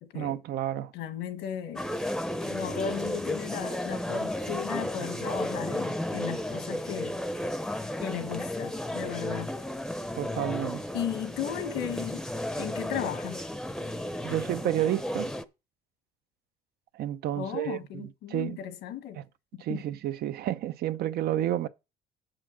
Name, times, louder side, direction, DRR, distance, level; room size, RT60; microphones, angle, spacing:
voice 1, 0.1-0.9 10.2-10.9 14.2-15.3 16.9-18.6 19.2-19.3 19.6-21.7, right 12 dB, 65° right, 0.7 m, -30 dB
voice 2, 0.9-1.9 2.4-7.2 8.0-9.5 10.9-12.2 12.6-13.5 17.4-19.2 19.7-19.8, left 9 dB, 85° left, 1.4 m, -35 dB
sound 1, 1.8-15.4, left 1 dB, 5° left, 0.7 m, -33 dB
7.7 x 5.8 x 6.2 m
cardioid pair, 110°, 17 cm